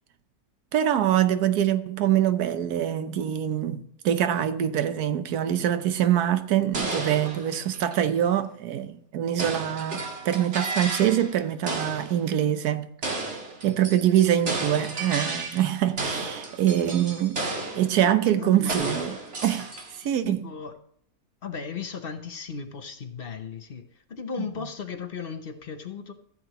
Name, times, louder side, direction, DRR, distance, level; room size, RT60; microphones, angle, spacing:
voice 1, 0.7-12.9 13.6-17.4 17.7-19.2 19.4-19.7 20.0-20.5, right 11 dB, 85° right, 1.3 m, -24 dB
sound 1, 6.7-8.2 9.4-11.4 11.7-12.2 13.0-15.7 16.0-18.0 18.7-20.1, right 3 dB, 50° right, 2.0 m, -33 dB
voice 2, 18.0-19.0 20.2-20.7 21.4-23.8 24.1-26.1, left 6 dB, 45° left, 0.9 m, -36 dB
14.5 x 7.7 x 3.0 m
omnidirectional pair, 1.6 m